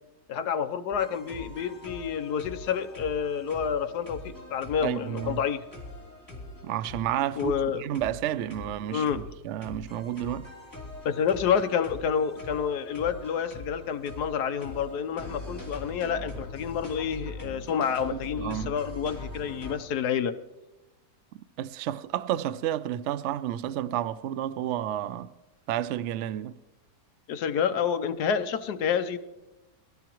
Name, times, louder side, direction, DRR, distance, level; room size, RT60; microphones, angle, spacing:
voice 1, 0.3-5.6 7.4-7.8 8.9-9.2 11.0-20.3 27.3-29.2, left 7 dB, 70° left, 1.3 m, -29 dB
sound 1, 0.9-19.8, left 2 dB, 10° left, 3.0 m, -42 dB
voice 2, 4.8-5.4 6.6-7.5 7.8-10.5 18.1-18.7 21.3-25.3 25.7-26.5, right 11 dB, 80° right, 0.6 m, -31 dB
23.0 x 13.0 x 3.0 m
omnidirectional pair, 1.9 m